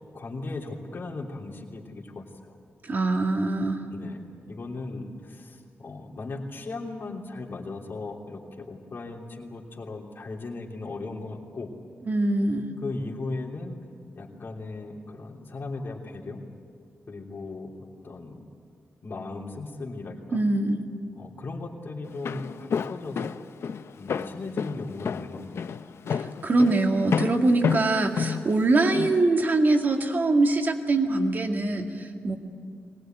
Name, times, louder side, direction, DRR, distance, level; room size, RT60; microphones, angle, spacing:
voice 1, 0.1-2.6 3.9-4.2 4.5-11.7 12.8-13.8 14.1-16.4 17.1-18.4 19.0-20.4 21.1-23.3 24.0-25.7, left 3 dB, 50° left, -1 dB, 3.1 m, -37 dB
voice 2, 2.8-3.8 12.0-12.7 20.3-20.9 26.1-32.4, right 2 dB, 45° right, 3 dB, 2.1 m, -23 dB
Walk footsteps, 22.0-29.2, left 6 dB, 70° left, 0.7 m, -30 dB
22.5 x 19.5 x 9.1 m, 2.2 s
wide cardioid pair, 140°, 5 cm